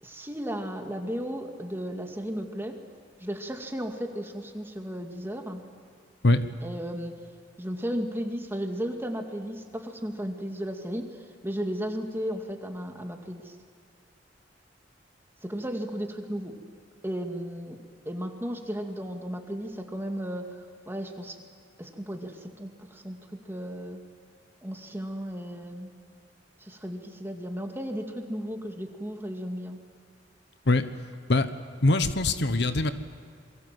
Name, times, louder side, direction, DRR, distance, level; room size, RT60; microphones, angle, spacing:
voice 1, 0.0-2.8 3.2-5.6 6.6-7.1 7.6-13.5 15.4-16.5 17.0-17.8 18.1-20.6 20.9-21.4 21.8-24.0 24.6-25.9 26.6-29.8, equal, 15° right, 3 dB, 2.3 m, -34 dB
voice 2, 31.8-32.9, left 2 dB, 65° left, 10 dB, 1.1 m, -22 dB
28.5 x 23.0 x 7.7 m, 2.3 s
head